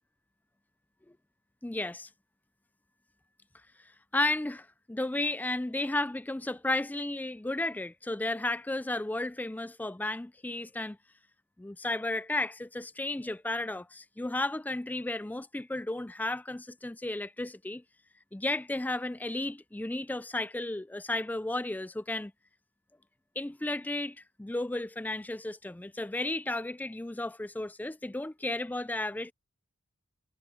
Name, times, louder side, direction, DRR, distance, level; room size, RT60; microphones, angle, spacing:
voice 1, 1.6-2.1 4.1-11.0 11.6-17.8 18.3-22.3 23.4-29.3, left 2 dB, 10° left, 0.3 m, -33 dB
head